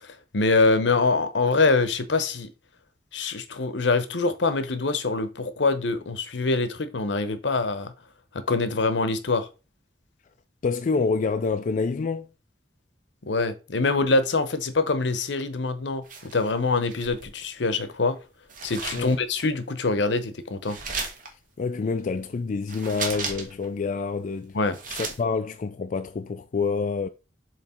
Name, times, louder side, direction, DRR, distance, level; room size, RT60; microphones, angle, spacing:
voice 1, 0.0-2.5 3.1-7.9 8.3-9.5 13.2-18.2 18.6-20.8 24.5-24.8, left 3 dB, 70° left, 0.8 m, -24 dB
voice 2, 10.6-12.3 18.9-19.1 21.6-24.6 24.9-27.1, left 4 dB, 45° left, 0.3 m, -27 dB
sound 1, 16.0-17.4 18.5-19.5 20.6-21.3 22.7-23.7 24.0-24.1 24.5-25.2, right 4 dB, 45° right, 1.6 m, -35 dB
7.3 x 3.2 x 4.3 m
head